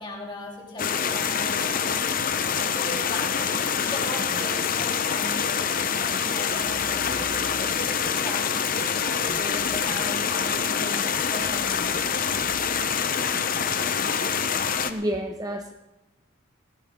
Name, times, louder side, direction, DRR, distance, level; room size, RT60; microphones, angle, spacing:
voice 1, 0.0-7.2 7.6-12.2, left 1 dB, 25° left, -2 dB, 3.2 m, -38 dB
sound 1, 0.8-14.9, left 7 dB, 45° left, 0.8 m, -26 dB
voice 2, 14.9-15.7, right 1 dB, 20° right, 4 dB, 0.8 m, -29 dB
19.0 x 16.0 x 3.8 m, 1.0 s
head